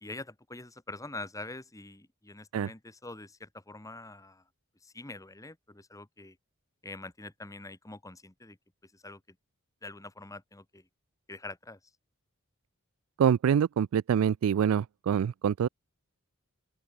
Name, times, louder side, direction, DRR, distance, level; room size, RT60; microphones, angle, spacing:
voice 1, 0.0-4.4 4.8-6.4 6.8-8.6 8.9-9.2 9.8-10.8 11.3-11.8, left 2 dB, 15° left, 1.7 m, -44 dB
voice 2, 13.2-15.7, right 8 dB, 75° right, 0.3 m, -25 dB
open air
head